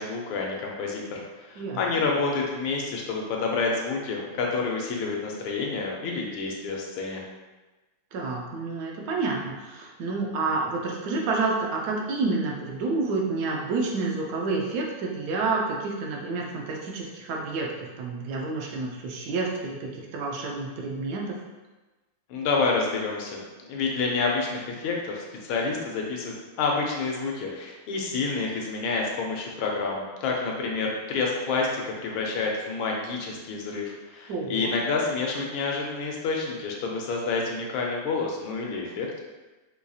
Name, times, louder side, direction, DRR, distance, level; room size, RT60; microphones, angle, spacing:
voice 1, 0.0-7.2 22.3-39.1, left 4 dB, 80° left, -1 dB, 1.5 m, -28 dB
voice 2, 8.1-21.3 34.3-34.7, right 3 dB, 75° right, -1 dB, 0.9 m, -29 dB
4.5 x 2.6 x 2.3 m, 1.2 s
omnidirectional pair, 2.3 m